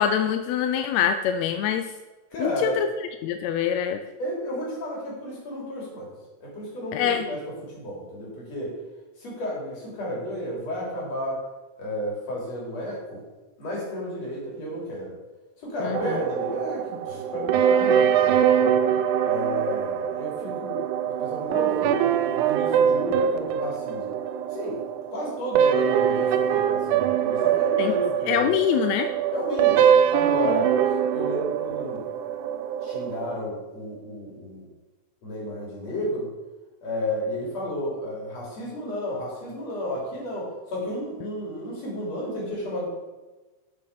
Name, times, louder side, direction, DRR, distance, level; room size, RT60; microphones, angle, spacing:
voice 1, 0.0-1.9 2.4-2.9 3.2-4.0 6.9-7.3 15.8-16.2 27.8-27.9 28.3-29.1, left 9 dB, 75° left, 8 dB, 1.7 m, -24 dB
voice 2, 2.3-2.8 4.2-6.1 6.4-8.7 9.2-11.4 11.8-13.2 13.6-15.2 15.6-18.7 19.2-24.2 24.5-24.8 25.1-28.5 29.3-29.8 30.1-30.7 31.1-32.0 32.8-34.7 35.2-36.3 36.8-42.9, equal, 60° left, -3 dB, 4.5 m, -32 dB
sound 1, 15.9-33.3, right 9 dB, 90° right, 2.1 m, -23 dB
8.5 x 6.7 x 6.8 m, 1.2 s
omnidirectional pair, 3.4 m